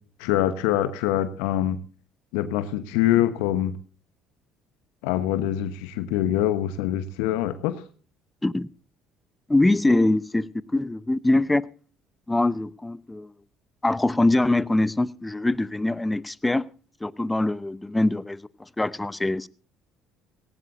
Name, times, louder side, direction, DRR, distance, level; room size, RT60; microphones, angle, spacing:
voice 1, 0.2-1.8 2.3-3.8 5.0-7.8, left 12 dB, 75° left, 1.0 m, -24 dB
voice 2, 9.5-11.6 12.3-13.3 13.8-16.7 17.0-19.5, left 2 dB, 15° left, 0.8 m, -23 dB
18.0 x 17.5 x 2.6 m
hypercardioid pair, 60°, 0 cm